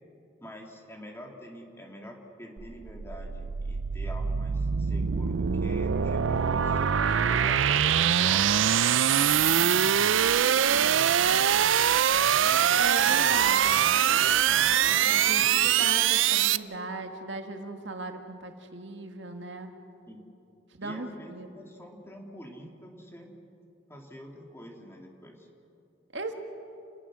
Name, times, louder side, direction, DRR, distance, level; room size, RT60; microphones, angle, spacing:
voice 1, 0.4-8.6 9.5-11.5 15.4-15.8 20.1-20.2 20.8-23.4 23.9-25.5, equal, 15° left, 1 dB, 2.6 m, -46 dB
sound 1, 2.6-16.6, right 9 dB, 85° right, 0.5 m, -23 dB
voice 2, 12.8-13.8 14.9-19.7 20.8-21.5 26.1-26.3, right 3 dB, 65° right, 5 dB, 1.8 m, -37 dB
29.5 x 20.0 x 6.3 m, 2.6 s
head